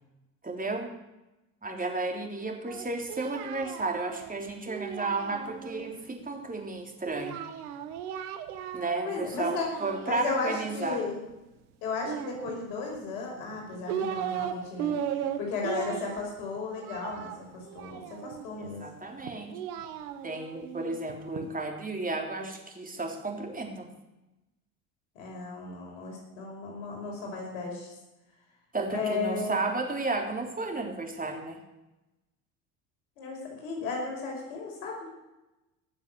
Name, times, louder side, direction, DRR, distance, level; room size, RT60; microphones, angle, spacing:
voice 1, 0.4-0.9 1.6-7.4 8.7-11.0 18.6-19.6 20.2-23.9 28.7-31.6, right 3 dB, 20° right, 2 dB, 3.5 m, -33 dB
Singing, 2.7-5.9 7.1-9.1 9.4-10.6 12.0-13.0 13.5-14.5 14.8-18.5 19.2-21.5, right 9 dB, 80° right, 1.5 m, -37 dB
voice 2, 9.0-9.7 10.0-11.2 11.8-18.8 25.2-27.9 28.9-29.5 33.2-35.1, left 4 dB, 80° left, -1 dB, 5.6 m, -35 dB
18.5 x 7.2 x 7.8 m, 0.99 s
hypercardioid pair, 70°, 43 cm